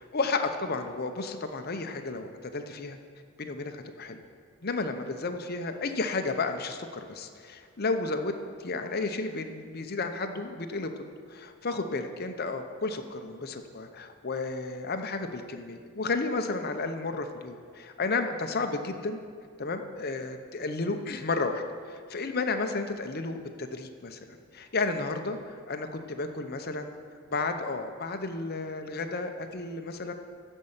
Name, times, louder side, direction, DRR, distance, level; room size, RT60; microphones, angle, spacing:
voice 1, 0.0-3.0 3.4-4.2 4.6-8.3 8.6-10.9 11.3-19.2 19.6-24.2 24.5-25.4 25.7-26.9 27.3-30.1, left 3 dB, 45° left, 6 dB, 0.8 m, -32 dB
14.5 x 5.5 x 7.2 m, 2.2 s
head